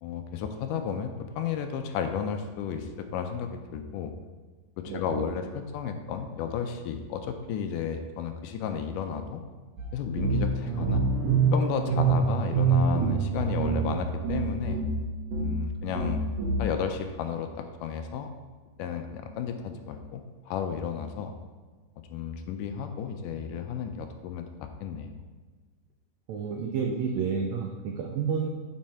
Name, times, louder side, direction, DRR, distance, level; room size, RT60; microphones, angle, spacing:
voice 1, 0.0-4.1 4.8-9.4 9.9-11.0 11.5-14.8 15.4-16.2 16.6-18.3 18.8-21.4 22.1-25.2, left 7 dB, 80° left, 6 dB, 2.1 m, -33 dB
voice 2, 4.9-5.3 26.3-28.5, right 6 dB, 90° right, 1 dB, 1.5 m, -30 dB
sound 1, 9.8-9.9 10.2-15.0 15.3-15.6 15.9-16.6, right 4 dB, 70° right, 2.6 m, -26 dB
7.5 x 5.5 x 4.3 m, 1.4 s
omnidirectional pair, 3.9 m